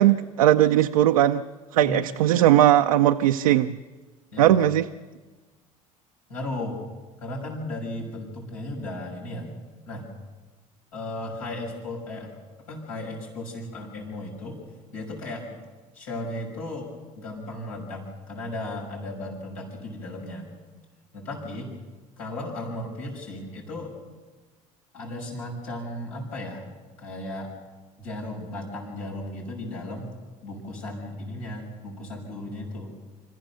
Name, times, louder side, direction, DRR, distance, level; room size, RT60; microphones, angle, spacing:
voice 1, 0.0-1.4 1.7-3.8 4.4-4.8, right 12 dB, 85° right, 6 dB, 0.6 m, -19 dB
voice 2, 6.3-6.8 7.2-9.6 9.9-10.1 10.9-12.4 12.7-14.6 14.9-15.5 15.9-20.5 21.1-21.7 22.2-23.9 24.9-26.7 27.0-27.5 28.0-30.1 30.4-32.9, left 1 dB, 85° left, -2 dB, 6.3 m, -35 dB
26.0 x 14.5 x 6.8 m, 1.3 s
hypercardioid pair, 70°, 18 cm